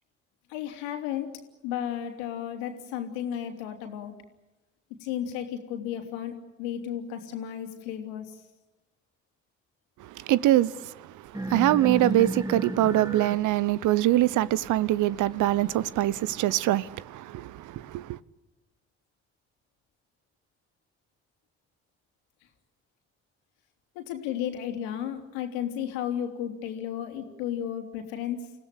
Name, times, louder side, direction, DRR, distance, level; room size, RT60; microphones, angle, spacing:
voice 1, 0.5-1.3 1.6-4.2 5.0-8.4 23.9-28.5, left 10 dB, 75° left, 3.0 m, -33 dB
voice 2, 10.2-10.9 11.5-18.2, right 14 dB, 60° right, 0.9 m, -24 dB
sound 1, 11.3-16.3, right 2 dB, 10° right, 1.6 m, -35 dB
29.5 x 16.5 x 9.8 m
hypercardioid pair, 45°, 33 cm